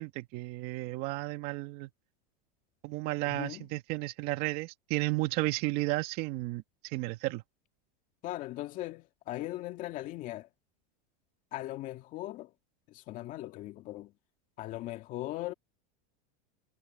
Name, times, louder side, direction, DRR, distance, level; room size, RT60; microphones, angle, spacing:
voice 1, 0.0-1.9 2.8-7.4, right 20 dB, 50° right, 2.2 m, -33 dB
voice 2, 3.3-3.7 8.2-10.5 11.5-12.5 12.9-14.1 14.6-15.5, left 16 dB, 40° left, 2.2 m, -39 dB
supercardioid pair, 145°, 21 cm